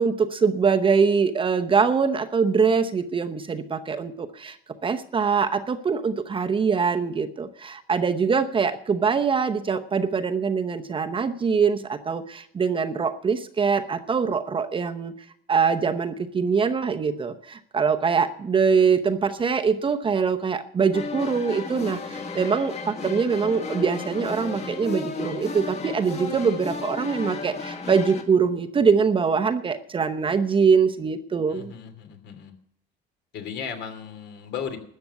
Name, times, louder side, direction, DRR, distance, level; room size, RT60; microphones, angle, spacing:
voice 1, 0.0-4.6 4.8-15.1 15.5-31.7, right 5 dB, 25° right, 8 dB, 0.8 m, -23 dB
Sevilla Procession Brass, 20.9-28.2, left 4 dB, 35° left, 2.0 m, -33 dB
voice 2, 31.5-32.5 33.3-34.8, left 7 dB, 60° left, 7 dB, 2.8 m, -35 dB
13.0 x 7.8 x 8.1 m, 0.69 s
cardioid pair, 130°, 20 cm